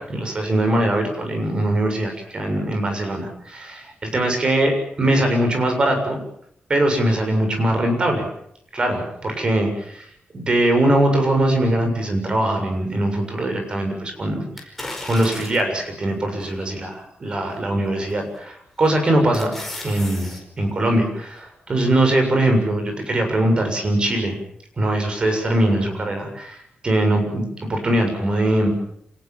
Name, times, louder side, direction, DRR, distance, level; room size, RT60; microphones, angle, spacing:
voice 1, 0.0-6.2 6.7-8.3 8.7-10.1 10.3-14.7 15.0-19.5 19.8-24.4 24.8-26.6 26.8-28.7, right 1 dB, 30° right, 5 dB, 7.1 m, -21 dB
sound 1, 14.6-15.8 16.4-16.5 18.1-18.4 18.8-20.4 20.8-20.9, left 2 dB, 5° left, 5.1 m, -35 dB
27.5 x 19.0 x 7.5 m, 0.70 s
wide cardioid pair, 170°, 3 cm